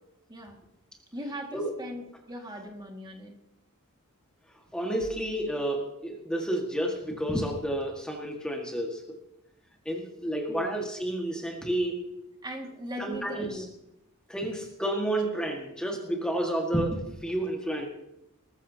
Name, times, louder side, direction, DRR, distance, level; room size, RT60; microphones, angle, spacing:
voice 1, 1.1-3.4 10.5-10.7 12.4-13.7, equal, 20° right, 2 dB, 2.0 m, -39 dB
voice 2, 4.7-9.2 9.8-12.0 13.0-13.6 14.3-17.9, right 1 dB, 5° left, 0 dB, 1.7 m, -30 dB
20.0 x 14.0 x 2.8 m, 0.85 s
head